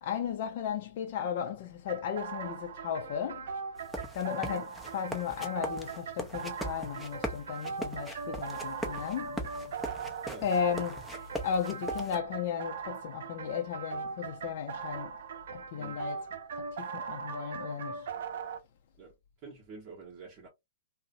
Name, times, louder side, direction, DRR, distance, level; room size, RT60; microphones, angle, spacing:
voice 1, 0.0-3.5 4.1-9.6 10.4-15.1 15.5-16.3 16.6-18.1, left 8 dB, 55° left, 0.4 m, -35 dB
sound 1, 1.9-18.6, right 5 dB, 65° right, 0.5 m, -40 dB
sound 2, 3.8-12.2, right 1 dB, ahead, 0.6 m, -40 dB
voice 2, 4.3-4.7 10.3-10.5 15.8-16.0 19.0-20.5, right 4 dB, 40° right, 0.9 m, -48 dB
2.6 x 2.0 x 2.5 m
hypercardioid pair, 120°, 0 cm